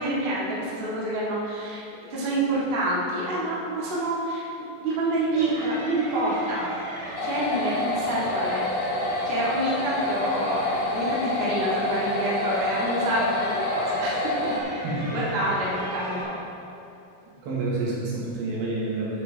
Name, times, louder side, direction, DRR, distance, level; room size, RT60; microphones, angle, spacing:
voice 1, 0.0-4.5 4.8-6.7 7.2-9.0 9.2-14.5 15.1-16.2, right 1 dB, 30° right, -7 dB, 1.1 m, -27 dB
sound 1, 5.3-16.2, right 1 dB, 60° right, 2.9 m, -36 dB
sound 2, 7.2-14.6, left 2 dB, 85° left, 1.4 m, -28 dB
voice 2, 14.8-15.2 17.4-19.2, right 2 dB, 90° right, -6 dB, 3.6 m, -28 dB
11.0 x 7.1 x 3.5 m, 2.7 s
omnidirectional pair, 4.2 m